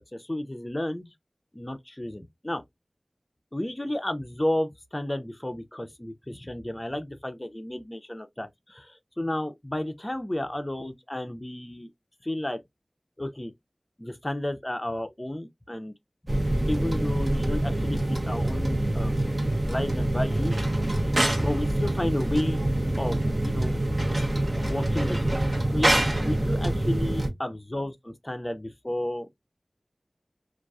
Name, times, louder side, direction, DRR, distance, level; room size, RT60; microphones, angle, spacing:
voice 1, 0.1-1.1 1.5-2.6 3.5-11.9 12.2-12.6 13.2-13.5 14.0-15.9 16.7-20.6 20.9-21.1 21.4-22.6 23.0-23.8 24.6-25.3 25.7-29.4, left 1 dB, 25° left, 0.4 m, -32 dB
sound 1, 16.3-27.3, right 1 dB, 55° right, 0.8 m, -25 dB
2.5 x 2.3 x 2.2 m
wide cardioid pair, 45°, 0 cm